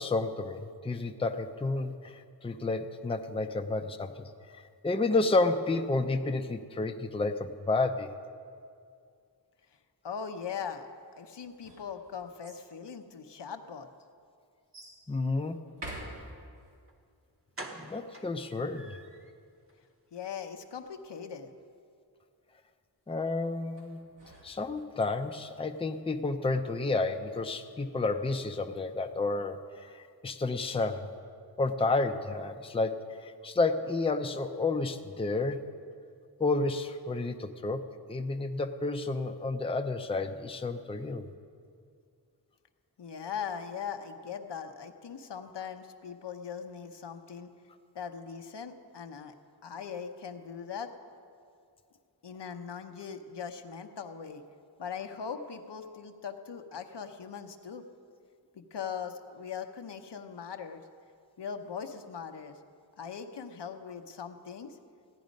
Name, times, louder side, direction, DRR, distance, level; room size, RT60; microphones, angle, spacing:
voice 1, 0.0-4.3 4.5-8.1 15.1-15.6 17.8-19.0 23.1-24.0 24.4-31.1 31.6-35.6 36.4-37.8 38.1-41.2, left 3 dB, 15° left, 6 dB, 0.5 m, -31 dB
voice 2, 10.0-10.9 11.2-13.9 20.1-21.6 43.0-47.5 47.9-49.3 49.6-50.9 52.2-54.4 54.8-57.8 58.5-60.8 61.4-62.6 63.0-64.8, left 7 dB, 75° left, 6 dB, 0.8 m, -40 dB
sound 1, 11.4-12.7 13.5-13.6 14.7-15.0 15.7-16.7 23.8-25.0, right 1 dB, 75° right, 3.4 m, -46 dB
sound 2, 16.9-17.0 17.5-19.3 19.7-19.8 20.2-20.3 20.6-20.7, right 2 dB, 30° right, 1.2 m, -46 dB
16.0 x 10.0 x 5.2 m, 2.3 s
wide cardioid pair, 90°, 42 cm